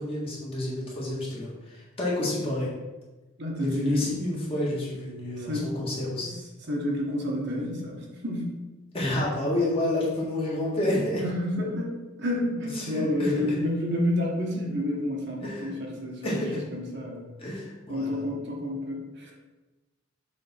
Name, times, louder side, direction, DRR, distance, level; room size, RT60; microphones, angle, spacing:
voice 1, 0.0-2.7 3.6-6.3 8.9-11.2 12.7-13.6 15.4-15.8 16.2-16.6 17.4-18.3, left 1 dB, 25° left, -5 dB, 1.6 m, -29 dB
voice 2, 3.4-3.9 5.5-5.8 6.7-8.5 11.2-11.9 12.2-16.4 16.7-17.3 17.9-19.3, left 1 dB, 50° right, -2 dB, 1.1 m, -29 dB
6.5 x 3.5 x 4.2 m, 1.1 s
head